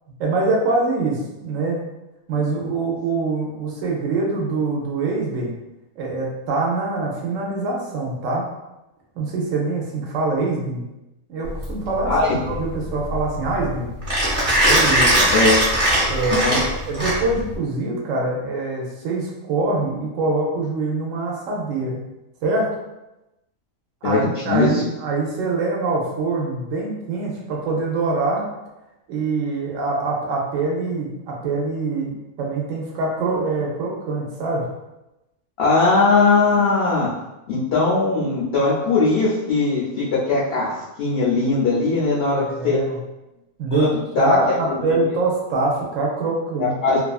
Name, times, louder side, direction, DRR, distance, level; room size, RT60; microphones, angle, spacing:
voice 1, 0.2-1.8 2.3-5.5 6.0-8.4 9.1-10.9 11.3-13.9 14.7-15.2 16.1-22.0 22.4-22.7 24.0-28.5 29.1-34.6 42.3-43.0 43.6-43.9 44.2-46.8, right 3 dB, 70° right, -2 dB, 0.9 m, -24 dB
Mechanisms, 11.5-17.6, right 1 dB, 40° right, 0.9 m, -20 dB
voice 2, 12.0-12.4 15.3-15.6 16.3-16.6 24.0-24.2 24.5-24.8 35.6-37.1 37.5-40.7 41.0-42.8 43.7-43.9 44.1-44.6 46.6-47.0, left 3 dB, 70° left, -7 dB, 0.5 m, -19 dB
2.6 x 2.4 x 2.3 m, 0.97 s
omnidirectional pair, 1.5 m